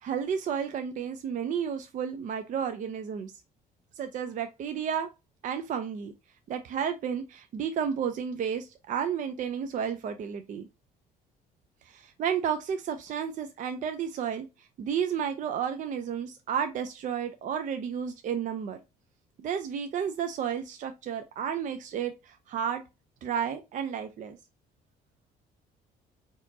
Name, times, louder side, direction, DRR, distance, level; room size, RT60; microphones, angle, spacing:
voice 1, 0.0-3.3 4.0-5.1 5.4-6.1 6.5-10.7 11.8-18.8 19.4-22.8 23.2-24.4, right 8 dB, 50° right, 0.5 m, -32 dB
4.3 x 2.9 x 2.7 m
cardioid pair, 110°, 17 cm